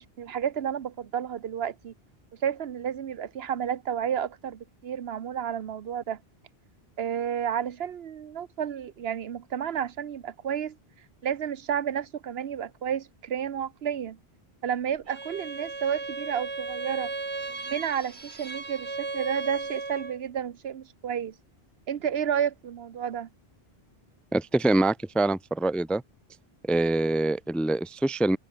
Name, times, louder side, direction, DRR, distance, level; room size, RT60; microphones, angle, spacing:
voice 1, 0.0-1.9 2.4-6.2 7.0-10.8 11.2-14.2 14.6-17.1 17.5-21.3 21.9-23.3, right 8 dB, 75° right, 1.0 m, -31 dB
Bowed string instrument, 15.1-20.2, right 3 dB, 90° right, 3.0 m, -36 dB
voice 2, 24.3-26.0 26.7-28.4, right 2 dB, ahead, 0.4 m, -25 dB
omnidirectional pair, 1.1 m